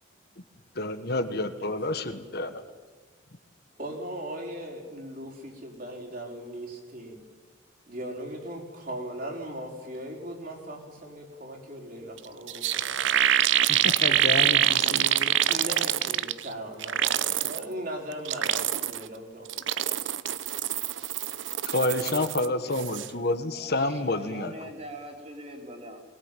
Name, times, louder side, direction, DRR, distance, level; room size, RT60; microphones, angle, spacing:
voice 1, 0.7-2.6 13.7-15.0 21.6-24.7, left 2 dB, 55° left, 9 dB, 1.6 m, -29 dB
voice 2, 3.8-7.2 7.9-13.0 14.1-20.1, equal, 45° right, 0 dB, 4.9 m, -39 dB
sound 1, 12.2-12.3 12.5-16.5 16.8-17.6 18.1-19.1 19.5-22.5 22.7-23.1, right 11 dB, 75° right, 0.7 m, -25 dB
voice 3, 23.5-26.0, right 1 dB, 30° right, 2 dB, 3.8 m, -43 dB
22.0 x 20.0 x 9.3 m, 1.4 s
head